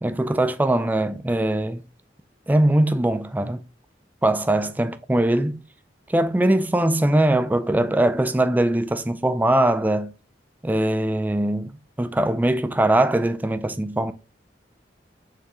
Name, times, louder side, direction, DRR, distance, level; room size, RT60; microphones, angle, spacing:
voice 1, 0.0-1.8 2.5-3.6 4.2-5.6 6.1-10.1 10.6-14.1, right 1 dB, 10° right, 0.3 m, -21 dB
4.6 x 3.6 x 2.9 m
head